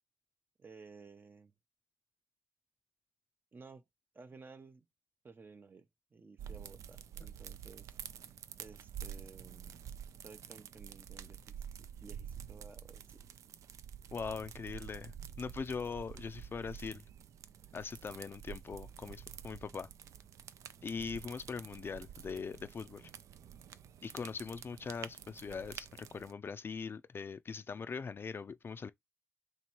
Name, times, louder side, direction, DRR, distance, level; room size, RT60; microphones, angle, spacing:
voice 1, 0.6-1.5 3.5-3.8 4.1-4.9 5.2-7.9 8.6-9.8 10.2-11.6 12.0-13.2, right 4 dB, 40° right, 0.7 m, -55 dB
sound 1, 6.4-26.3, right 9 dB, 80° right, 0.3 m, -49 dB
voice 2, 14.1-17.0 17.7-19.9 20.8-23.1 24.0-28.9, left 5 dB, 45° left, 0.4 m, -41 dB
3.1 x 2.9 x 4.4 m
cardioid pair, 60°, 5 cm